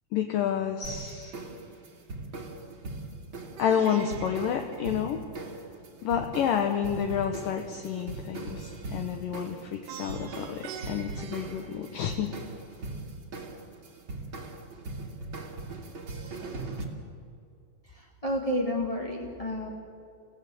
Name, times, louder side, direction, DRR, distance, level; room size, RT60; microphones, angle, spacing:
voice 1, 0.1-1.3 3.6-5.2 6.0-12.3, left 8 dB, 70° left, 4 dB, 2.5 m, -29 dB
sound 1, 0.8-16.8, right 2 dB, 35° right, 2.6 m, -40 dB
Plucked string instrument, 3.6-5.7 9.9-12.5, right 9 dB, 65° right, 2.4 m, -44 dB
voice 2, 17.8-19.7, left 1 dB, 20° left, -2 dB, 1.0 m, -31 dB
29.5 x 16.5 x 7.8 m, 2.4 s
omnidirectional pair, 4.5 m